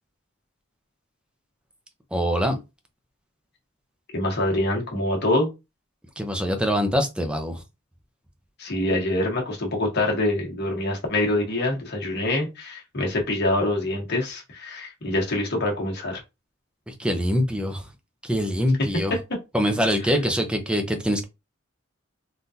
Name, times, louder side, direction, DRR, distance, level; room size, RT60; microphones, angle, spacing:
voice 1, 2.1-2.6 6.2-7.6 16.9-17.8 18.2-19.1 19.5-21.2, equal, 5° right, 0.6 m, -24 dB
voice 2, 4.1-5.5 8.6-16.2, left 1 dB, 55° left, 1.3 m, -25 dB
3.7 x 2.4 x 2.7 m
head